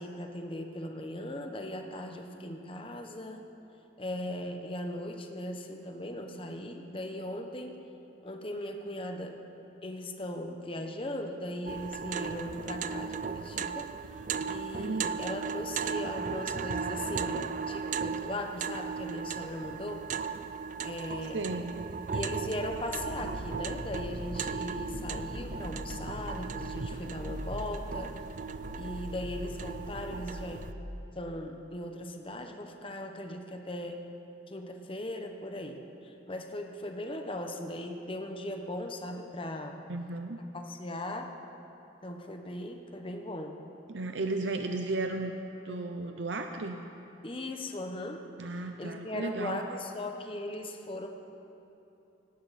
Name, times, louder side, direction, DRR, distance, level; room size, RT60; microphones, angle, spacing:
voice 1, 0.0-3.4 4.0-7.8 8.2-9.4 9.8-13.9 14.4-20.1 20.8-21.4 22.1-28.1 28.7-30.6 31.1-34.0 34.5-39.8 40.5-41.3 42.0-43.6 47.2-48.2 48.8-51.1, left 1 dB, 25° left, 4 dB, 1.1 m, -38 dB
sound 1, 11.7-30.7, right 6 dB, 40° right, 0.4 m, -37 dB
voice 2, 21.3-21.8 39.9-40.4 43.9-45.3 45.6-46.8 48.4-49.6, right 2 dB, 70° right, 5 dB, 0.7 m, -34 dB
sound 2, 22.7-30.6, equal, 55° left, 2.6 m, -42 dB
18.0 x 17.0 x 4.3 m, 2.9 s
head